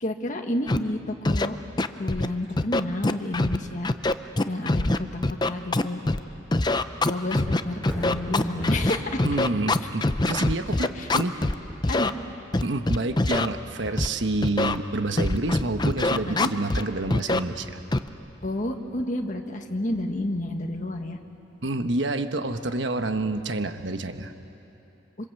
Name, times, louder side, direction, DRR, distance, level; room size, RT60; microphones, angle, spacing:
voice 1, 0.0-3.9 4.4-5.2 5.5-6.0 7.0-9.2 10.9-11.1 11.9-12.1 16.3-16.5 18.4-21.2, left 1 dB, 40° left, 3 dB, 1.6 m, -30 dB
Scratching (performance technique), 0.7-0.8 1.2-1.5 1.8-2.3 2.6-3.6 3.8-6.2 6.5-11.5 11.8-12.1 12.5-13.5 14.0-14.1 14.4-14.8 15.2-16.8 17.1-17.4 17.9-18.1, left 2 dB, 20° left, 0.6 m, -23 dB
Thunder, 7.9-22.0 22.4-22.5, equal, 5° right, 6.0 m, -41 dB
voice 2, 9.2-11.4 12.6-17.8 21.6-24.3, right 2 dB, 65° right, 8 dB, 1.2 m, -28 dB
27.0 x 26.0 x 8.3 m, 2.9 s
head